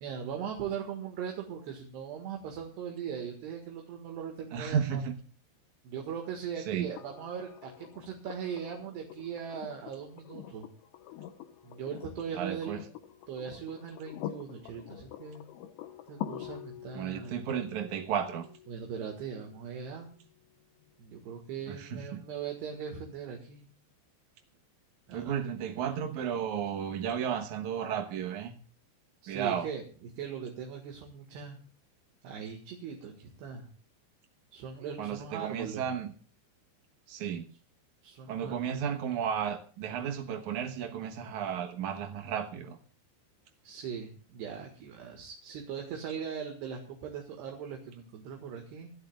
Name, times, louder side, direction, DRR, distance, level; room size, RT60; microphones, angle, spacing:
voice 1, 0.0-5.0 5.9-10.7 11.6-12.8 13.3-15.4 16.1-17.4 18.7-20.1 21.0-23.7 25.1-25.3 29.2-29.8 30.2-31.6 32.2-33.7 34.5-35.8 38.0-38.8 43.6-48.9, right 7 dB, 70° right, 2 dB, 3.6 m, -40 dB
voice 2, 4.5-5.1 6.7-6.9 12.3-12.8 16.9-18.5 21.7-22.2 25.1-28.6 29.3-29.7 35.0-36.1 37.1-37.5 38.3-42.8, right 8 dB, 85° right, 4 dB, 1.6 m, -33 dB
sound 1, 7.0-20.9 22.6-22.7, left 11 dB, 80° left, 3.3 m, -46 dB
25.0 x 13.0 x 2.4 m, 0.39 s
omnidirectional pair, 5.3 m